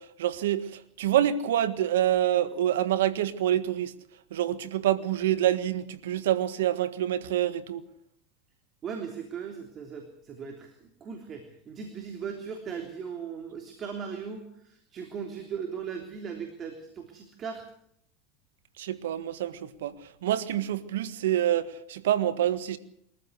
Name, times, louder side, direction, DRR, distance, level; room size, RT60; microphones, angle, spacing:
voice 1, 0.0-4.0 4.3-7.9 18.8-22.8, right 11 dB, 80° right, 1.6 m, -27 dB
voice 2, 8.8-17.6, right 6 dB, 35° right, 3.4 m, -38 dB
23.0 x 14.5 x 8.2 m
hypercardioid pair, 105°, 0 cm